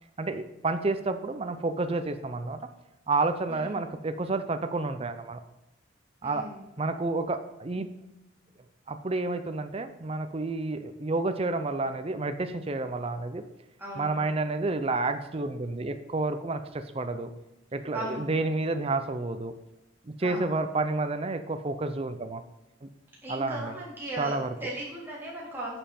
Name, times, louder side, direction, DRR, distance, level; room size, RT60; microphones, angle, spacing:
voice 1, 0.2-2.6 3.1-5.4 6.2-6.5 6.8-7.9 8.9-13.4 14.0-17.3 17.7-19.5 20.1-22.4 22.8-22.9 23.3-23.7 24.2-24.5, right 3 dB, 30° right, 8 dB, 0.5 m, -30 dB
voice 2, 3.5-3.8 6.2-6.6 13.8-14.3 17.9-18.3 20.2-20.5 23.2-25.8, right 1 dB, 10° right, -7 dB, 3.8 m, -37 dB
11.0 x 7.2 x 4.3 m, 0.92 s
head